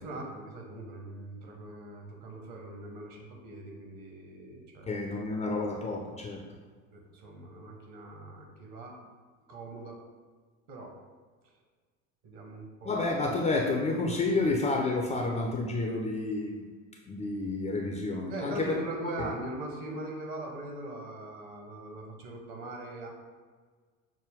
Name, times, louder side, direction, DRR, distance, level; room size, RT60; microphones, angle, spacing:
voice 1, 0.0-4.9 6.9-9.0 9.5-10.0 10.7-10.9 12.2-13.1 18.3-23.1, right 2 dB, 45° right, 1 dB, 1.0 m, -41 dB
voice 2, 4.9-6.4 12.8-16.7 17.1-18.8, left 3 dB, 20° left, 0 dB, 0.4 m, -30 dB
6.0 x 2.2 x 3.5 m, 1.5 s
figure-of-eight pair, 65°, 40 cm